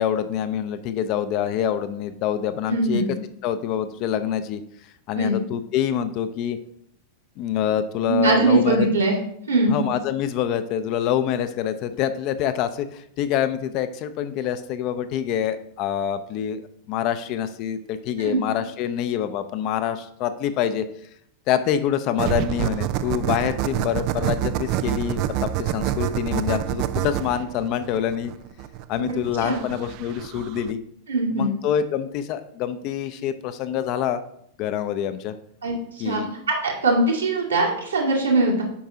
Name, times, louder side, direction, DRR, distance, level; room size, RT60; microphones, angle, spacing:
voice 1, 0.0-3.2 3.4-4.6 5.1-6.6 7.4-8.9 9.7-16.6 16.9-20.8 21.5-28.3 28.9-30.8 31.3-34.2 34.6-35.3 36.0-36.3, left 9 dB, 40° left, 10 dB, 0.5 m, -26 dB
voice 2, 2.7-3.1 5.1-5.3 8.0-9.2 9.5-9.8 18.2-18.4 29.4-29.6 31.1-31.5 35.6-36.2 36.5-38.6, right 2 dB, 75° right, -3 dB, 2.0 m, -21 dB
sound 1, 22.2-30.7, right 12 dB, 40° right, 0.3 m, -27 dB
8.4 x 5.5 x 2.8 m, 0.69 s
figure-of-eight pair, 90°, 0 cm